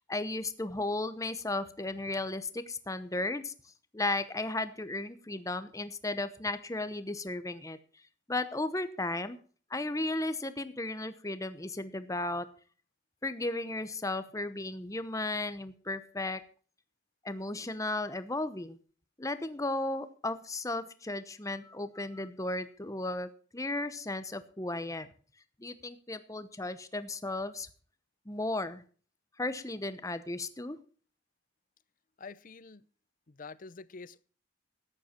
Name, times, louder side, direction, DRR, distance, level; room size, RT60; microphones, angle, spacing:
voice 1, 0.0-3.5 3.9-7.8 8.3-9.4 9.7-12.5 13.2-16.4 17.2-18.8 19.2-25.1 25.6-27.7 28.3-28.8 29.4-30.8, left 2 dB, 15° left, 12 dB, 0.9 m, -35 dB
voice 2, 32.2-32.8 33.3-34.2, left 4 dB, 40° left, 17 dB, 0.6 m, -47 dB
14.0 x 10.0 x 4.5 m, 0.42 s
head